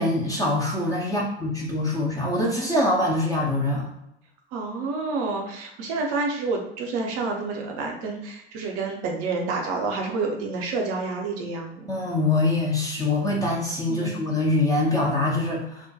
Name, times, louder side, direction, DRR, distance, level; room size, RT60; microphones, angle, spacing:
voice 1, 0.0-3.9 11.9-15.9, left 2 dB, 10° left, -3 dB, 0.5 m, -24 dB
voice 2, 4.5-11.9 13.9-14.2, right 3 dB, 45° right, 1 dB, 0.6 m, -29 dB
2.3 x 2.1 x 2.6 m, 0.81 s
figure-of-eight pair, 70°, 33 cm